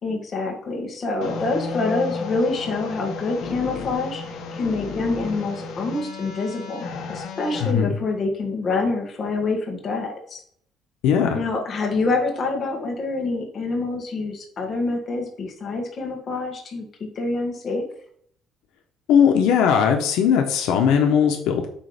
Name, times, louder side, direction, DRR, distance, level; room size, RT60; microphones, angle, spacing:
voice 1, 0.0-10.4 11.3-16.9 17.1-17.9, left 3 dB, 35° left, 1 dB, 1.6 m, -26 dB
sound 1, 1.2-7.7, left 4 dB, 65° left, 1.2 m, -33 dB
voice 2, 7.6-8.0 11.0-11.4 19.1-21.7, left 7 dB, 90° left, 4 dB, 1.0 m, -18 dB
8.5 x 3.2 x 5.1 m, 0.62 s
cardioid pair, 160°, 0 cm